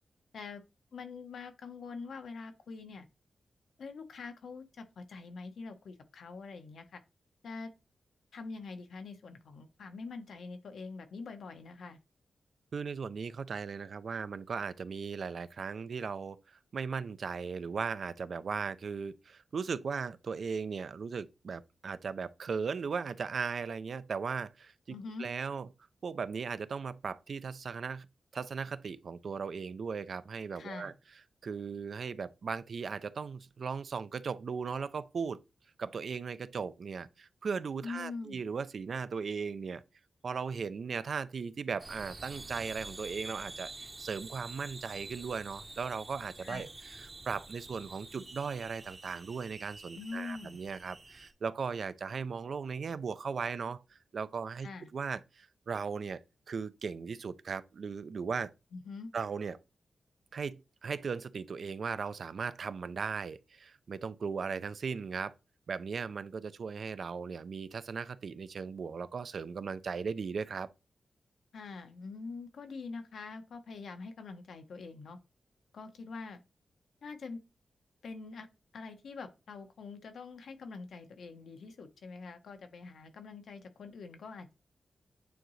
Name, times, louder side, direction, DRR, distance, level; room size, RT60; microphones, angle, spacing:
voice 1, 0.9-3.1 3.8-7.0 7.4-7.7 8.3-12.0 24.9-25.3 30.5-30.9 37.8-38.4 46.4-46.7 50.0-50.6 54.6-54.9 58.7-59.1 71.5-75.2 75.7-76.4 77.0-77.4 78.0-78.5 78.7-84.5, left 4 dB, 75° left, 1.0 m, -44 dB
voice 2, 12.7-24.7 25.2-25.7 26.0-28.1 28.3-30.9 31.4-35.4 35.8-39.8 40.2-46.7 47.0-54.7 54.9-56.2 56.5-58.5 59.1-59.6 60.3-65.3 65.7-70.7, right 5 dB, 55° right, 0.4 m, -37 dB
sound 1, 41.8-51.3, right 2 dB, 20° right, 0.8 m, -48 dB
9.1 x 3.8 x 3.1 m
wide cardioid pair, 160°, 0 cm